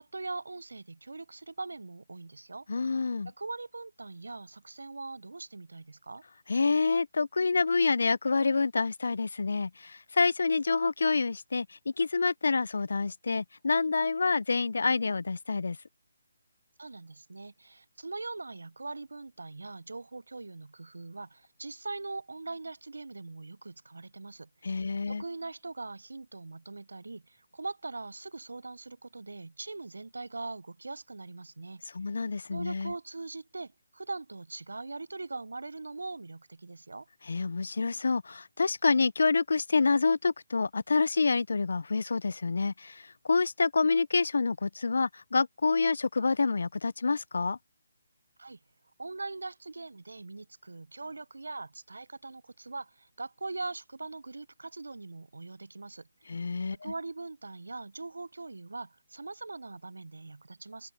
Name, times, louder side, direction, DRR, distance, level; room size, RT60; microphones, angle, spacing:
voice 1, 0.0-2.7 3.2-6.2 16.8-31.8 32.5-37.1 48.4-48.6 49.0-56.1 56.7-60.9, right 3 dB, 75° right, 0.8 m, -41 dB
voice 2, 2.7-3.3 6.5-15.8 24.6-25.2 31.9-32.9 37.3-47.6 56.3-56.9, left 4 dB, 65° left, 0.6 m, -27 dB
open air
figure-of-eight pair, 145°, 0 cm